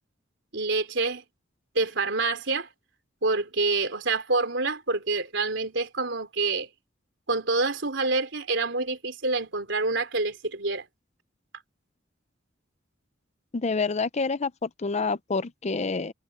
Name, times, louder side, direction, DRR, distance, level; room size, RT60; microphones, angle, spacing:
voice 1, 0.5-1.2 1.8-2.7 3.2-6.7 7.3-10.8, right 3 dB, 70° right, 3.8 m, -27 dB
voice 2, 13.5-16.1, left 4 dB, 35° left, 0.6 m, -28 dB
head